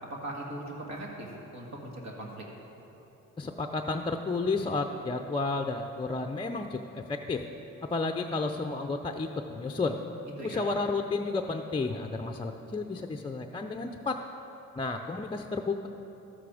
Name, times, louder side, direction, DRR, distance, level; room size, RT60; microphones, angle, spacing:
voice 1, 0.0-2.5 10.4-10.6, right 1 dB, 65° right, -2 dB, 2.0 m, -40 dB
voice 2, 3.4-7.4 7.8-10.0 10.4-14.2 14.8-15.9, left 3 dB, 15° left, 4 dB, 0.5 m, -32 dB
12.5 x 8.1 x 5.0 m, 3.0 s
cardioid pair, 90°, 30 cm